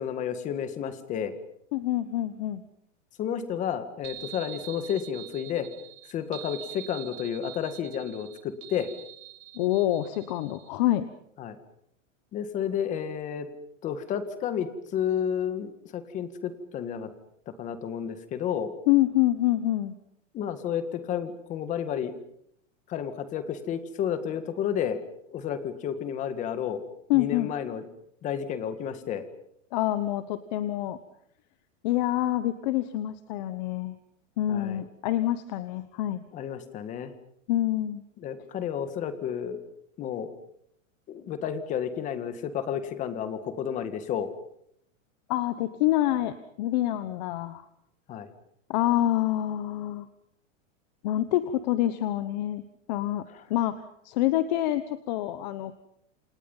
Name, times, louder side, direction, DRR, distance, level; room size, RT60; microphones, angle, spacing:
voice 1, 0.0-1.4 3.2-5.7 6.1-8.9 11.4-11.6 12.3-13.5 13.8-17.1 17.6-18.7 20.3-22.1 22.9-25.0 25.3-26.8 27.1-27.8 28.2-29.3 34.5-34.8 36.3-37.1 38.2-39.6 40.0-40.3 41.1-44.3 48.1-48.3 53.3-53.4, left 8 dB, 20° left, 11 dB, 1.9 m, -31 dB
voice 2, 1.7-2.6 9.5-11.1 18.9-19.9 27.1-27.5 29.7-31.0 31.8-34.0 34.4-36.2 37.5-38.0 45.3-47.6 48.7-50.1 51.0-52.6 52.9-53.2 53.5-55.7, left 14 dB, 35° left, 13 dB, 1.1 m, -26 dB
sound 1, 4.0-10.7, right 13 dB, 60° right, 6.6 m, -45 dB
28.5 x 27.5 x 5.6 m, 0.71 s
supercardioid pair, 175°, 38 cm